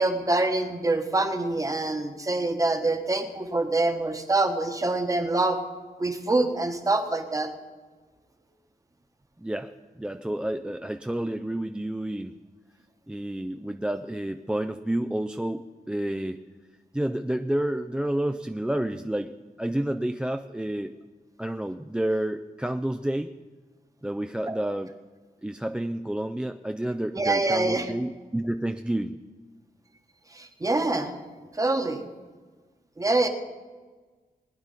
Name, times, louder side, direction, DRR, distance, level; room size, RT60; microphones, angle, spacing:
voice 1, 0.0-5.6 6.0-7.5 24.5-24.6 27.1-27.9 30.3-31.1 31.5-32.1 33.0-33.3, right 2 dB, 20° right, 6 dB, 1.2 m, -25 dB
voice 2, 9.4-9.7 10.0-12.3 13.1-16.4 16.9-20.9 21.4-23.3 24.0-24.9 25.4-29.2, right 1 dB, 5° right, 8 dB, 0.3 m, -30 dB
20.0 x 10.5 x 4.1 m, 1.4 s
wide cardioid pair, 150°, 15 cm